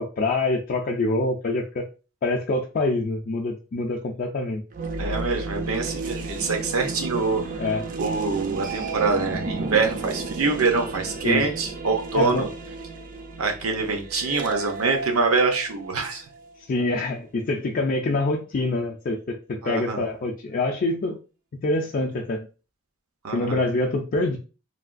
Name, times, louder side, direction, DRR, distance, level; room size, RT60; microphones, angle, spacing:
voice 1, 0.0-1.8 2.2-4.6 7.6-7.8 11.2-11.5 12.1-12.5 16.7-21.2 21.6-22.5 23.3-24.4, left 2 dB, 40° left, 0.4 m, -25 dB
sound 1, 4.7-16.6, right 3 dB, 40° right, 0.4 m, -33 dB
voice 2, 5.0-7.4 8.0-12.5 13.4-16.2 19.6-20.0 23.2-23.6, right 4 dB, 80° right, 0.7 m, -25 dB
3.3 x 2.2 x 2.5 m
head